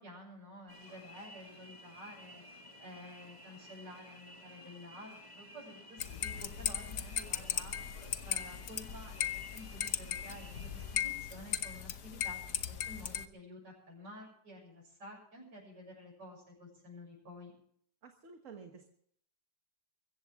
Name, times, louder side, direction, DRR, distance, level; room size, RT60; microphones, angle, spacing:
voice 1, 0.0-7.7 8.2-17.5, left 1 dB, 70° right, -4 dB, 7.7 m, -51 dB
sound 1, 0.7-11.0, left 1 dB, 15° left, 2.0 m, -54 dB
sound 2, 6.0-13.3, left 9 dB, 65° left, 1.5 m, -38 dB
voice 2, 18.0-18.9, right 5 dB, 45° right, 5 dB, 1.8 m, -51 dB
23.5 x 15.0 x 3.7 m, 0.64 s
omnidirectional pair, 1.9 m